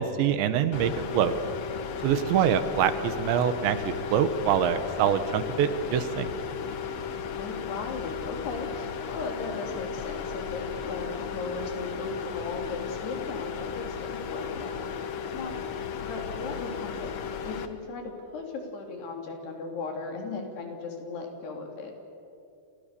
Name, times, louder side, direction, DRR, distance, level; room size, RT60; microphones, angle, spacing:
voice 1, 0.0-1.3 2.0-6.3, right 9 dB, 80° right, 11 dB, 3.5 m, -25 dB
sound 1, 0.7-17.7, left 7 dB, 85° left, 1.4 m, -35 dB
voice 2, 2.1-2.4 7.3-14.9 15.3-15.6 16.0-21.9, left 3 dB, 65° left, 2 dB, 5.4 m, -37 dB
29.5 x 28.0 x 6.9 m, 2.7 s
omnidirectional pair, 5.1 m